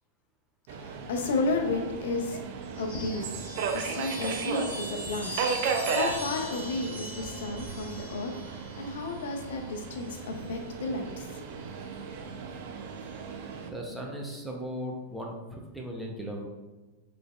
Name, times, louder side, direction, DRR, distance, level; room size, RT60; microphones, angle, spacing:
voice 1, 0.7-2.4 2.8-11.3, left 3 dB, 70° left, 3 dB, 0.5 m, -33 dB
Subway metro underground, 0.7-13.7, right 5 dB, 60° right, 0.4 m, -35 dB
Chime, 2.6-10.5 11.7-12.3, right 1 dB, 85° right, 1.4 m, -41 dB
voice 2, 13.6-16.5, equal, 5° right, 0 dB, 0.7 m, -37 dB
3.9 x 3.3 x 2.3 m, 1.2 s
hypercardioid pair, 115°, 0 cm